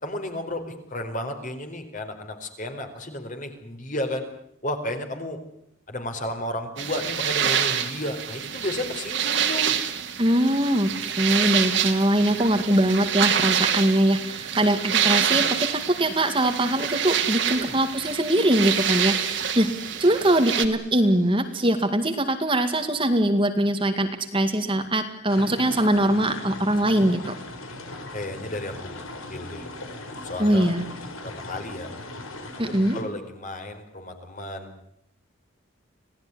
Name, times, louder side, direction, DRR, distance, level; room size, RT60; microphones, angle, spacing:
voice 1, 0.0-4.3 4.6-5.4 5.9-9.7 17.4-17.8 28.1-28.9 29.3-29.7 30.2-30.7 31.2-31.9 32.7-34.7, left 1 dB, 40° left, 6 dB, 4.3 m, -33 dB
sound 1, 6.8-20.7, right 8 dB, 60° right, 2.7 m, -26 dB
voice 2, 10.2-19.7 20.0-27.4 30.4-30.8 32.6-33.0, right 1 dB, 25° right, 7 dB, 2.0 m, -22 dB
sound 2, 18.6-22.0, right 8 dB, 40° right, 2.4 m, -39 dB
sound 3, 25.3-33.0, left 2 dB, 90° left, 5.1 m, -38 dB
27.0 x 18.0 x 9.9 m, 0.75 s
head